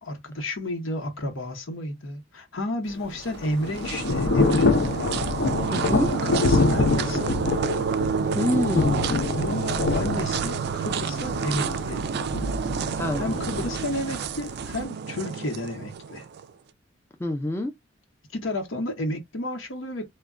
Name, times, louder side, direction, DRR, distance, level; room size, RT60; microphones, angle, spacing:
voice 1, 0.0-4.9 5.6-7.3 9.3-12.0 13.2-16.2 18.3-20.1, left 1 dB, 90° left, 0.9 m, -31 dB
Thunder / Rain, 2.9-14.8, left 3 dB, 60° left, 0.5 m, -26 dB
sound 1, 3.1-16.5, right 6 dB, 55° right, 0.3 m, -30 dB
voice 2, 5.7-6.1 8.3-9.1 12.9-13.3 17.2-17.7, left 1 dB, 15° left, 0.4 m, -26 dB
2.3 x 2.1 x 3.6 m
head